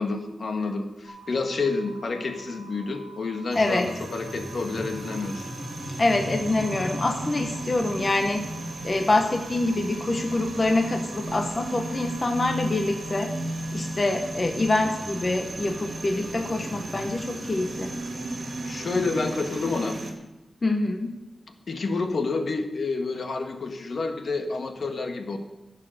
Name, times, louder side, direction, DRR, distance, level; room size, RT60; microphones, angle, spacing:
voice 1, 0.0-5.5 18.6-20.0 21.7-25.4, left 3 dB, 60° left, 5 dB, 1.5 m, -29 dB
sound 1, 1.0-13.1, right 2 dB, 80° left, 5.1 m, -48 dB
voice 2, 3.5-3.9 6.0-8.4 8.8-13.3 13.7-17.9 20.6-21.1, left 2 dB, 35° left, 4 dB, 1.0 m, -25 dB
sound 2, 3.5-20.1, right 1 dB, 55° right, 2.2 m, -35 dB
15.0 x 7.4 x 6.6 m, 1.0 s
wide cardioid pair, 115°, 0 cm